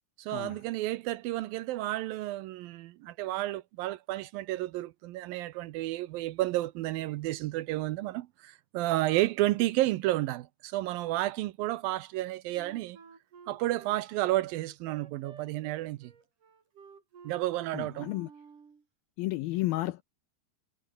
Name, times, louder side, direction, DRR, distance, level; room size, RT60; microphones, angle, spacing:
voice 1, 0.2-13.0 13.5-16.1 17.2-18.1, right 16 dB, 80° right, 2.2 m, -31 dB
Wind instrument woodwind instrument, 12.5-18.8, right 6 dB, 50° right, 5.3 m, -53 dB
voice 2, 17.7-18.3 19.2-20.0, left 18 dB, 80° left, 2.1 m, -32 dB
omnidirectional pair, 5.0 m